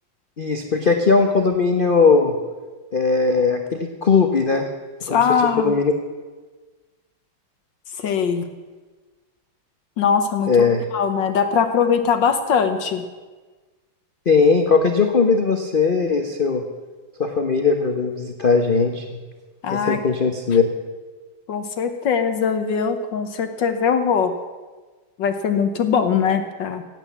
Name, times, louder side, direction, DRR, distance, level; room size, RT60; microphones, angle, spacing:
voice 1, 0.4-2.3 2.9-4.7 5.1-5.2 5.6-5.9 10.5-10.8 14.3-16.6 17.2-19.0 19.7-20.6, left 4 dB, 40° left, 4 dB, 0.8 m, -18 dB
voice 2, 5.0-5.8 8.0-8.5 10.0-10.5 10.9-13.0 19.6-20.0 21.5-24.3 25.2-26.8, left 6 dB, 65° left, 8 dB, 1.6 m, -21 dB
16.5 x 9.0 x 7.3 m, 1.3 s
omnidirectional pair, 2.3 m